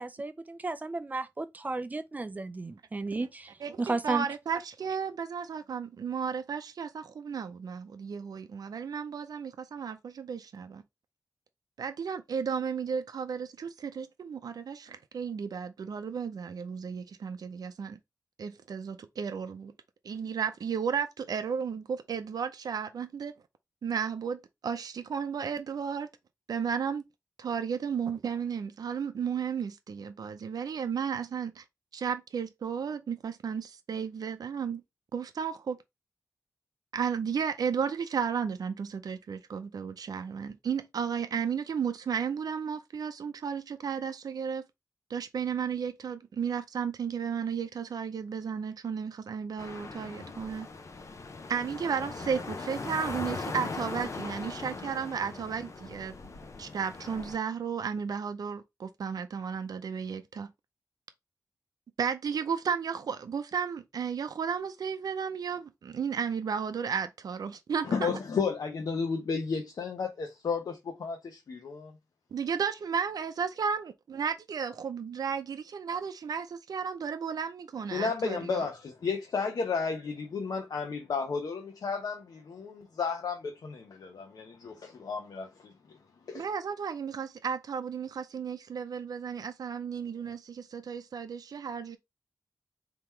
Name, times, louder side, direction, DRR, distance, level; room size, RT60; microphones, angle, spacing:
voice 1, 0.0-3.5 3.8-4.3, right 3 dB, 25° right, 0.5 m, -33 dB
voice 2, 3.6-10.8 11.8-18.0 18.4-19.7 20.0-23.3 23.8-26.1 26.5-27.0 27.4-31.6 31.9-34.8 35.1-35.8 36.9-44.6 45.1-50.7 51.5-56.1 56.6-60.5 62.0-68.1 72.3-78.7 86.3-92.0, right 6 dB, 75° right, 0.6 m, -33 dB
sound 1, 49.6-57.4, left 3 dB, 50° left, 0.7 m, -40 dB
voice 3, 67.8-71.9 77.9-86.0 86.3-86.4, left 5 dB, 75° left, 0.8 m, -33 dB
3.6 x 3.0 x 4.4 m
wide cardioid pair, 155°, 7 cm